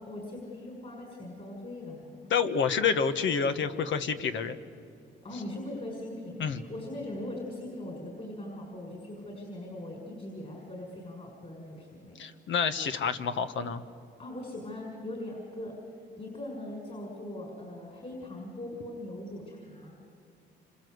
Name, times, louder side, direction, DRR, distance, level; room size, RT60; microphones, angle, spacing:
voice 1, 0.0-2.2 5.2-12.2 14.2-15.8 16.2-20.0, left 1 dB, 35° left, 0 dB, 6.3 m, -40 dB
voice 2, 2.3-4.6 6.4-6.6 12.2-13.8, left 6 dB, 70° left, 9 dB, 1.6 m, -28 dB
27.5 x 26.5 x 8.1 m, 2.3 s
cardioid pair, 90°, 20 cm